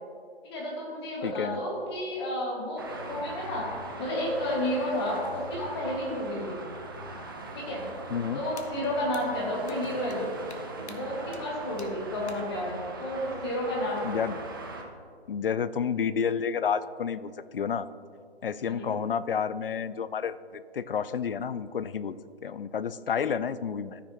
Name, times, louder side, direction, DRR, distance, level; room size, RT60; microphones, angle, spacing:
voice 1, 0.4-3.7 4.0-6.6 7.5-7.9 8.3-10.3 10.9-14.2 18.6-19.0, left 1 dB, 25° left, -3 dB, 1.8 m, -31 dB
voice 2, 1.2-1.6 8.1-8.4 14.0-14.4 15.3-17.9 18.4-22.2 22.4-24.0, left 7 dB, 60° left, 15 dB, 0.4 m, -30 dB
Traffic noise roadway noise, 2.8-14.8, right 2 dB, 20° right, 0.6 m, -41 dB
sound 1, 8.6-8.7 9.1-9.2 9.7-9.8 10.1-10.2 10.5-10.6 10.9-11.0 11.3-11.4 11.8-11.9 12.3-12.4, left 4 dB, 80° left, 1.1 m, -46 dB
14.0 x 6.0 x 2.8 m, 2.2 s
figure-of-eight pair, 150°, 33 cm